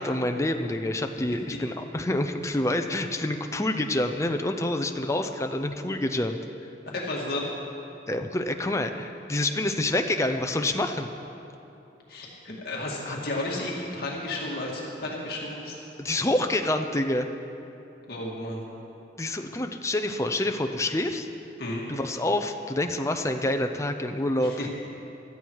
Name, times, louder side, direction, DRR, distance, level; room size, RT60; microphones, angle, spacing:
voice 1, 0.0-6.4 8.1-11.1 13.1-13.2 16.0-17.3 19.2-21.3 21.9-24.7, left 1 dB, 15° left, 5 dB, 0.6 m, -27 dB
voice 2, 6.9-7.4 12.1-15.7 18.1-18.6 21.6-21.8 24.4-24.7, left 2 dB, 55° left, -3 dB, 2.3 m, -32 dB
16.5 x 13.0 x 4.7 m, 2.8 s
head